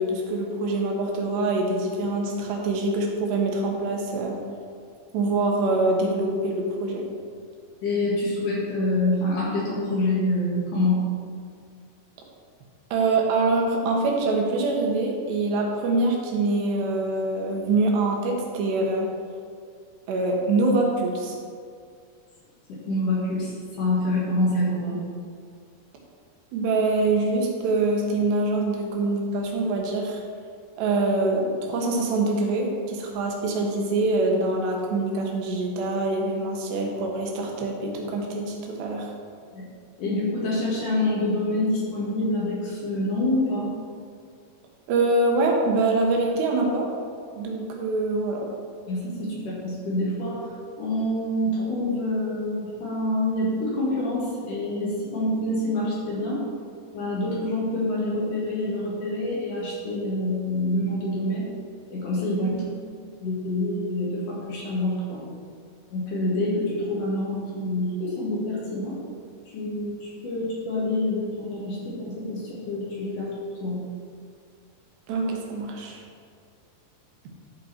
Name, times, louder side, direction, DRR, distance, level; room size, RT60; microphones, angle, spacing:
voice 1, 0.0-4.4 5.1-7.0 12.9-19.1 20.1-21.4 26.5-30.2 30.8-39.1 44.9-46.9 47.3-48.5 62.4-62.7 75.1-76.0, right 2 dB, 85° right, 0 dB, 3.4 m, -24 dB
voice 2, 7.8-11.0 22.9-23.5 23.8-25.0 39.5-39.6 40.0-43.7 48.9-50.4 50.8-56.4 56.9-61.5 61.9-62.5 63.2-65.2 65.9-68.9 69.5-73.3 73.6-73.8, left 1 dB, 55° left, -6 dB, 3.2 m, -26 dB
12.0 x 5.6 x 4.4 m, 2.2 s
omnidirectional pair, 4.7 m